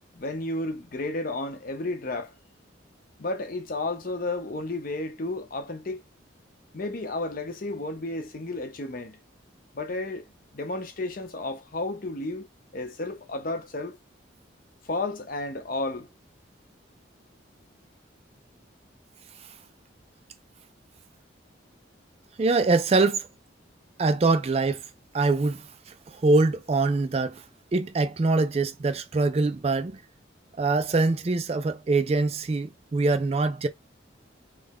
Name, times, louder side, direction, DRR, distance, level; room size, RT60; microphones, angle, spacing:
voice 1, 0.0-2.3 3.2-6.0 6.7-9.2 9.7-10.2 10.5-12.5 12.7-14.0 14.8-16.1, left 2 dB, 45° left, 0.7 m, -32 dB
voice 2, 22.4-23.3 24.0-24.8 25.1-25.7 26.1-27.4 27.7-30.0 30.6-33.7, right 3 dB, 30° right, 0.3 m, -23 dB
3.2 x 2.4 x 3.5 m
head